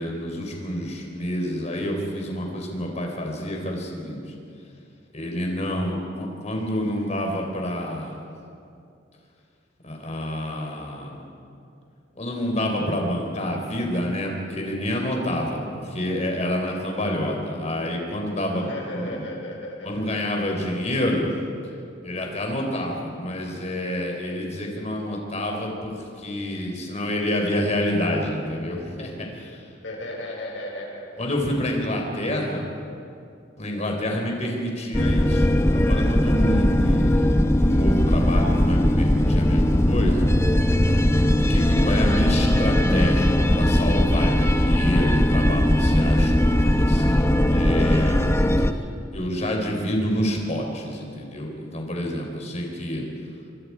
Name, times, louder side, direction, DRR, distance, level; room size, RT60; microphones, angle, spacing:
voice 1, 0.0-4.3 5.1-8.3 9.8-11.3 12.1-19.2 19.8-21.3 22.0-29.6 31.2-32.7 33.6-35.5 35.7-40.3 41.4-48.3 48.6-48.7 49.1-53.0, left 1 dB, 40° left, 1 dB, 4.1 m, -28 dB
voice 2, 18.5-20.1 20.5-20.9 29.8-31.3, left 1 dB, 90° left, 0 dB, 5.3 m, -35 dB
sound 1, 34.9-48.7, left 1 dB, 15° left, 0.8 m, -19 dB
24.5 x 24.5 x 4.8 m, 2.5 s
head